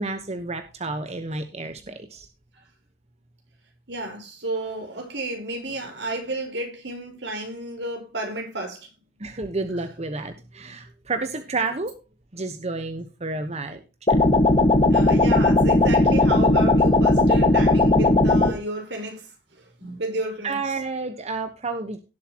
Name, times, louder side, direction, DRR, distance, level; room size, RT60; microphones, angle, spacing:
voice 1, 0.0-2.3 9.2-11.9 12.3-13.8 20.4-22.0, right 3 dB, 40° right, 1.2 m, -30 dB
voice 2, 3.9-8.9 14.9-19.3 19.8-20.6, right 2 dB, 80° right, 4.6 m, -31 dB
sound 1, 14.1-18.5, left 2 dB, 35° left, 1.7 m, -17 dB
17.5 x 7.9 x 3.0 m
head